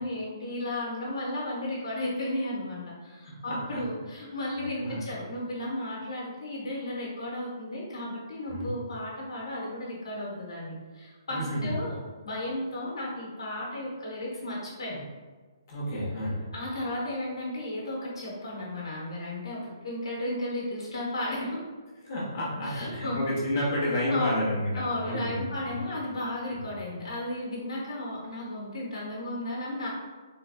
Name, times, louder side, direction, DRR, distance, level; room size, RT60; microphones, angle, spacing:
voice 1, 0.0-15.0 16.5-21.6 22.6-23.2 24.1-24.5 24.7-29.9, left 1 dB, 85° left, -3 dB, 1.2 m, -34 dB
voice 2, 3.5-3.8 4.8-5.0 8.5-8.7 11.3-11.7 15.7-16.5 22.0-25.7, left 1 dB, 35° left, -7 dB, 1.1 m, -30 dB
3.8 x 3.0 x 2.3 m, 1.4 s
hypercardioid pair, 175°, 3 cm